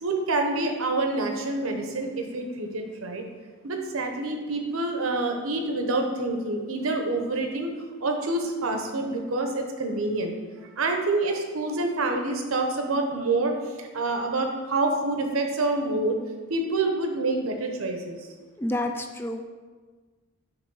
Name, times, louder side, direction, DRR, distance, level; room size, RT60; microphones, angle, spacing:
voice 1, 0.0-3.2 3.6-7.7 8.0-10.3 10.8-16.2 16.5-18.2, right 2 dB, 80° right, 4 dB, 0.8 m, -27 dB
voice 2, 18.6-19.4, left 1 dB, 10° left, 6 dB, 0.3 m, -29 dB
7.0 x 3.1 x 5.4 m, 1.4 s
head